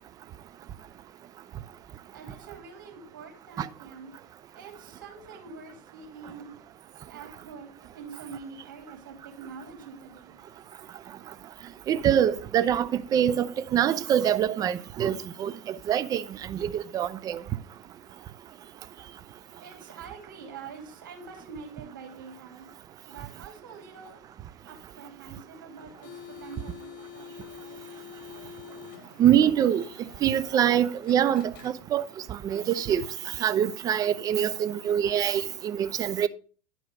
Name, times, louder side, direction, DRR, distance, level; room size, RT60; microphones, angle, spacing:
voice 1, 2.1-4.2 4.5-6.7 7.0-10.4 19.6-22.7 23.0-24.3 24.6-28.0, right 5 dB, 75° right, 3.1 m, -45 dB
voice 2, 11.9-17.4 29.2-29.8 30.2-33.1 33.4-36.3, right 9 dB, 35° right, 0.6 m, -25 dB
sound 1, 25.8-32.2, left 9 dB, 60° left, 1.3 m, -47 dB
10.5 x 4.6 x 5.1 m
hypercardioid pair, 85°, 11 cm